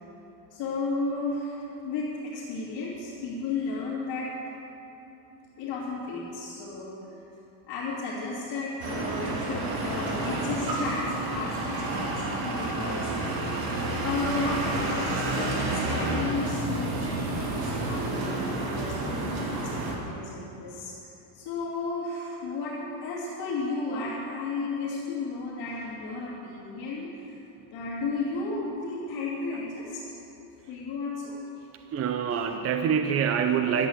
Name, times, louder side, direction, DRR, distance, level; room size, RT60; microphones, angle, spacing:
voice 1, 0.5-4.3 5.6-7.0 7.7-13.4 14.0-20.9 21.3-27.4 27.7-30.0 30.7-31.4, left 3 dB, 55° left, -8 dB, 3.3 m, -33 dB
sound 1, 8.8-20.0, right 2 dB, 45° right, 2.2 m, -30 dB
voice 2, 31.9-33.9, right 7 dB, 30° right, 6 dB, 0.5 m, -25 dB
12.5 x 10.5 x 7.4 m, 3.0 s
cardioid pair, 160°, 49 cm